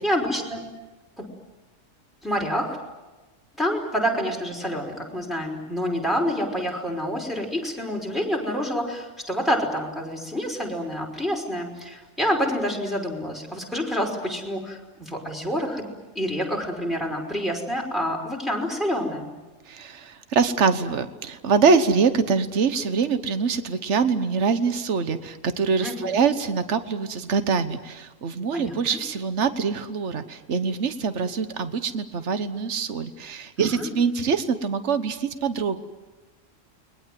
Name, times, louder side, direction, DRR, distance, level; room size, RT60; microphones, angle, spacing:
voice 1, 0.0-0.7 1.2-1.3 2.2-2.8 3.6-15.9 16.2-19.3 25.8-26.1 28.5-29.0 33.6-33.9, equal, ahead, 0 dB, 5.3 m, -27 dB
voice 2, 19.7-35.8, right 5 dB, 65° right, 10 dB, 1.5 m, -24 dB
30.0 x 22.0 x 7.7 m, 1.2 s
omnidirectional pair, 1.3 m